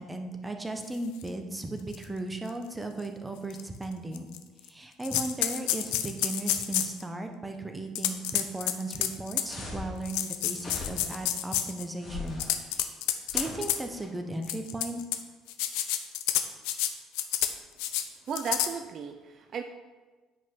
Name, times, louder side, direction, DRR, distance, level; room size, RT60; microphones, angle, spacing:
voice 1, 0.0-4.3 4.6-13.0 13.3-15.0, right 2 dB, 15° right, 5 dB, 1.0 m, -36 dB
sound 1, 1.2-1.3 1.9-2.0 2.5-2.6 3.5-3.6 4.1-4.7 5.0-7.0 7.9-9.5 10.0-11.8 12.3-13.8 14.4-15.2 15.5-16.9 17.1-17.5 17.8-18.0 18.3-18.7, left 12 dB, 70° left, 0.5 m, -29 dB
sound 2, 9.5-10.0 10.6-11.2 12.0-12.5 13.3-14.1, left 2 dB, 40° left, 2.7 m, -40 dB
voice 2, 18.3-19.6, right 6 dB, 50° right, 6 dB, 0.5 m, -35 dB
9.2 x 5.1 x 3.9 m, 1.3 s
hypercardioid pair, 55°, 0 cm